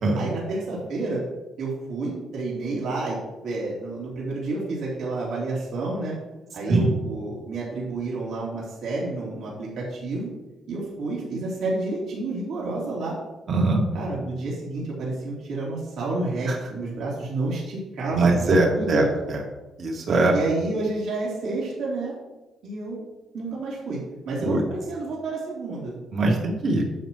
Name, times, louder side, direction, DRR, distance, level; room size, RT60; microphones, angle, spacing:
voice 1, 0.2-1.2 1.6-3.2 3.4-6.1 6.5-10.3 10.7-13.2 13.9-19.1 20.3-22.1 22.6-23.0 23.3-24.0 24.2-25.9, right 2 dB, 75° right, -5 dB, 3.3 m, -29 dB
voice 2, 13.5-13.8 16.5-16.6 18.1-19.4 19.8-20.3 24.4-24.6 26.1-26.9, right 2 dB, 55° right, 0 dB, 2.0 m, -21 dB
11.0 x 7.6 x 3.1 m, 1.1 s
cardioid pair, 90°, 0 cm